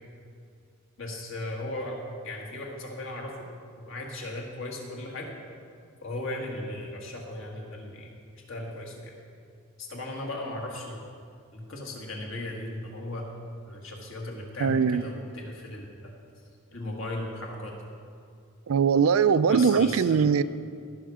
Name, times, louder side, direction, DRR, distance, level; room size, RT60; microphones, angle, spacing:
voice 1, 1.0-2.0 2.2-3.3 3.7-5.3 6.0-8.1 8.5-9.1 9.8-11.0 11.5-13.3 13.7-16.1 16.7-17.7 19.5-20.3, left 1 dB, 60° left, -1 dB, 1.8 m, -37 dB
voice 2, 14.6-15.0 18.7-20.4, right 6 dB, 75° right, 15 dB, 0.4 m, -21 dB
16.0 x 6.4 x 4.9 m, 2.3 s
head